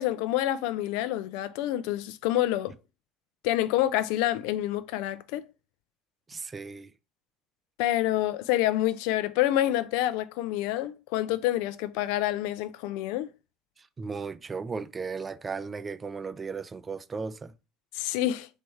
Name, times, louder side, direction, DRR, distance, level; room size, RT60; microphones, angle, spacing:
voice 1, 0.0-2.7 3.4-5.4 7.8-13.3 17.9-18.5, left 14 dB, 60° left, 0.3 m, -27 dB
voice 2, 6.3-6.9 14.0-17.5, right 5 dB, 25° right, 0.3 m, -36 dB
3.3 x 3.1 x 4.2 m
figure-of-eight pair, 65°, 0 cm